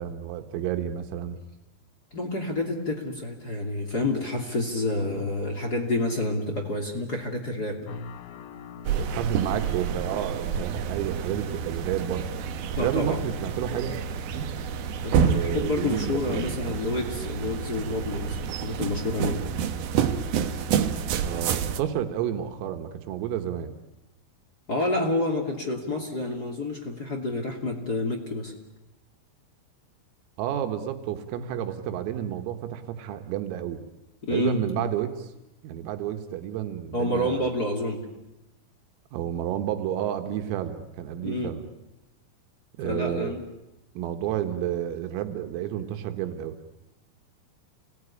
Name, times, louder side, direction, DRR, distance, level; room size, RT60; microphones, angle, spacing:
voice 1, 0.0-1.4 9.0-12.3 12.8-14.0 15.2-16.8 21.3-23.7 30.4-33.8 34.3-35.3 35.6-37.5 39.1-41.6 42.8-43.4 44.0-46.6, right 10 dB, 90° right, 7 dB, 4.1 m, -30 dB
voice 2, 2.1-7.8 12.8-13.2 15.0-19.4 24.7-28.5 34.2-34.9 36.9-38.0 41.2-41.6 42.8-43.4, left 2 dB, 25° left, 2 dB, 2.2 m, -29 dB
sound 1, 7.9-14.7, left 5 dB, 65° left, 3.2 m, -46 dB
sound 2, 8.8-21.8, right 7 dB, 70° right, 2.4 m, -29 dB
29.0 x 20.0 x 9.9 m, 0.97 s
omnidirectional pair, 5.9 m